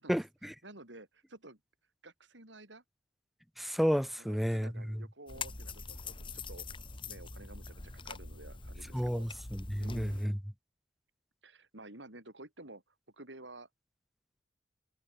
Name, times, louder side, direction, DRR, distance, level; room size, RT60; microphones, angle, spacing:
voice 1, 0.1-0.5 3.6-5.0 8.9-10.4, equal, ahead, 0.9 m, -32 dB
voice 2, 0.6-1.6 2.0-2.8 4.2-6.7 7.0-9.3 9.8-10.3 11.4-12.8 13.1-13.7, right 2 dB, 80° right, 5.5 m, -52 dB
sound 1, 5.3-10.3, left 4 dB, 25° left, 1.6 m, -44 dB
head